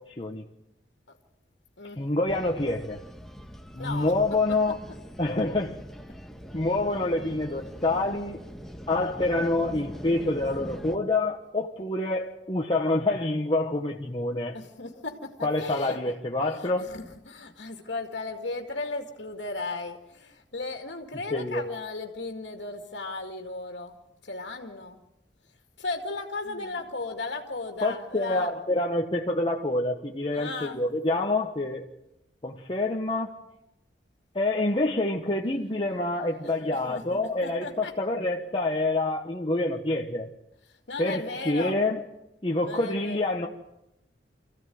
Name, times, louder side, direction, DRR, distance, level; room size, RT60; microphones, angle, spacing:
voice 1, 0.1-0.5 2.0-3.0 3.7-4.8 5.2-5.8 6.5-8.4 8.9-14.5 15.4-16.9 21.3-21.7 27.8-31.8 32.4-33.3 34.3-40.3 41.0-42.0 42.4-43.5, left 2 dB, 30° left, 0 dB, 1.3 m, -27 dB
sound 1, 2.3-11.0, equal, ahead, 1.5 m, -43 dB
voice 2, 3.8-4.1 14.5-16.0 16.4-25.0 25.8-28.5 30.3-30.9 36.4-37.9 40.7-41.8 42.6-43.2, left 3 dB, 85° left, 3 dB, 2.2 m, -36 dB
26.5 x 15.5 x 9.3 m, 0.90 s
head